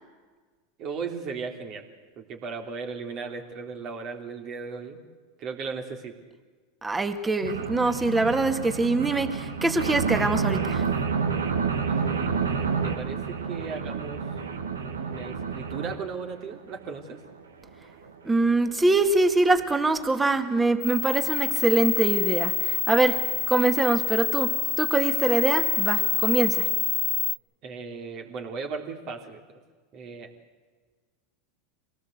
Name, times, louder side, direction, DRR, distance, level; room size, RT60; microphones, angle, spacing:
voice 1, 0.8-1.8 2.2-5.0 5.4-6.1 11.8-14.2 14.8-17.2 27.6-29.4 29.9-30.3, right 5 dB, 50° right, 3 dB, 3.3 m, -36 dB
voice 2, 6.8-10.9 18.2-26.7, right 2 dB, 15° right, 8 dB, 2.0 m, -24 dB
sound 1, 7.4-15.9 16.5-16.6 16.9-17.0 17.3-17.4 17.7-17.8 18.1-18.2 18.8-18.9 19.2-19.3 19.6-19.7 20.0-20.1 20.4-20.5, right 5 dB, 90° right, 1.8 m, -29 dB
sound 2, 20.8-27.4, left 8 dB, 35° left, 1.1 m, -27 dB
24.5 x 18.0 x 8.1 m, 1.4 s
hypercardioid pair, 90°, 0 cm